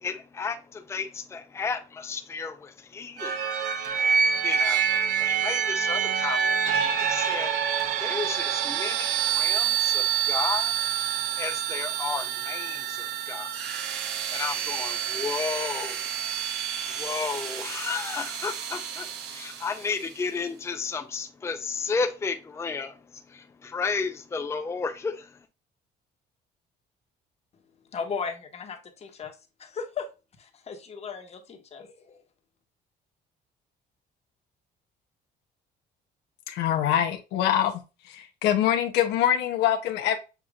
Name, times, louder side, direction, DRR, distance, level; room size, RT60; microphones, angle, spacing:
voice 1, 0.0-3.4 4.4-6.6 7.0-7.6 8.0-10.7 11.4-13.6 14.3-16.0 16.9-23.0 23.3-25.3, left 5 dB, 15° left, 0.5 m, -33 dB
sound 1, 3.2-19.9, right 8 dB, 85° right, 0.8 m, -27 dB
voice 2, 27.9-30.1 30.4-32.2, left 5 dB, 40° left, 1.1 m, -36 dB
voice 3, 36.5-37.8 38.1-40.2, left 10 dB, 85° left, 0.7 m, -24 dB
6.8 x 2.9 x 2.3 m
cardioid pair, 110°, 17 cm